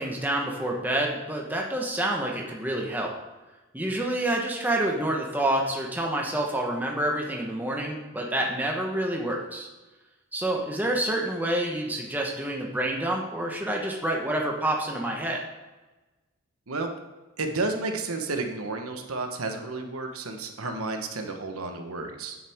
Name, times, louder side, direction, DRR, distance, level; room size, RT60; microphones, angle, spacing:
voice 1, 0.0-3.1 3.7-9.7 10.3-15.4, right 1 dB, 10° right, -1 dB, 1.1 m, -28 dB
voice 2, 17.4-22.4, right 3 dB, 85° right, 4 dB, 1.2 m, -31 dB
9.3 x 7.4 x 3.6 m, 1.2 s
head